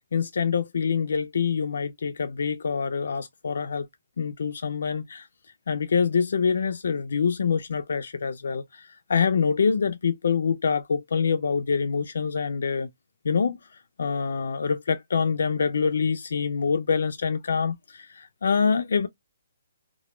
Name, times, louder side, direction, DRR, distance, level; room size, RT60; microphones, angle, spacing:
voice 1, 0.1-3.9 4.2-5.3 5.7-12.9 13.2-19.1, left 6 dB, 70° left, 0.3 m, -25 dB
2.1 x 2.0 x 2.9 m
hypercardioid pair, 170°, 0 cm